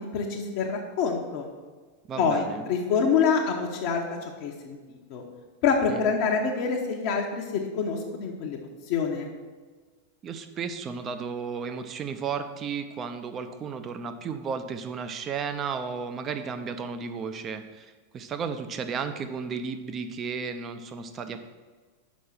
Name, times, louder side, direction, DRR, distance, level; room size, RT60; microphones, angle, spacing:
voice 1, 0.0-1.5 2.2-4.8 5.1-5.2 5.6-9.3, left 5 dB, 45° left, -1 dB, 0.8 m, -26 dB
voice 2, 2.1-2.6 5.9-6.0 10.2-21.4, right 5 dB, 25° right, 8 dB, 0.6 m, -34 dB
6.3 x 5.4 x 5.7 m, 1.4 s
figure-of-eight pair, 90°, 0 cm